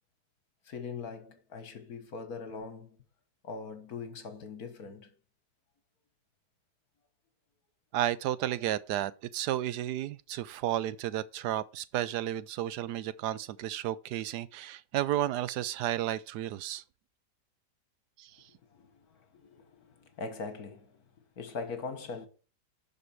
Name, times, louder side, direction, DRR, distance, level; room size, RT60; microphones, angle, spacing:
voice 1, 0.7-3.0 3.4-5.1 18.7-21.0 21.4-22.3, left 4 dB, 65° left, 1.9 m, -41 dB
voice 2, 7.9-16.8 18.2-18.3, right 12 dB, 85° right, 1.2 m, -32 dB
11.0 x 5.2 x 4.5 m
omnidirectional pair, 1.8 m